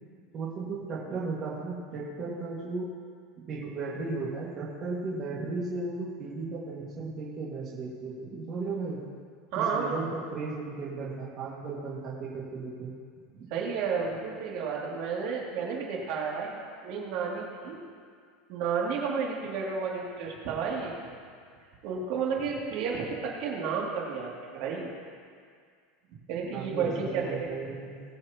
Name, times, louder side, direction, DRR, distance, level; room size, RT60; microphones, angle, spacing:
voice 1, 0.3-2.9 3.4-9.0 9.6-12.9 13.3-13.5 26.5-28.0, right 3 dB, 35° right, -6 dB, 1.9 m, -35 dB
voice 2, 9.5-9.9 13.5-16.6 16.8-17.8 18.5-21.0 21.8-24.9 26.3-27.5, right 5 dB, 55° right, -3 dB, 2.5 m, -31 dB
20.5 x 8.2 x 3.0 m, 2.1 s
supercardioid pair, 150°, 0 cm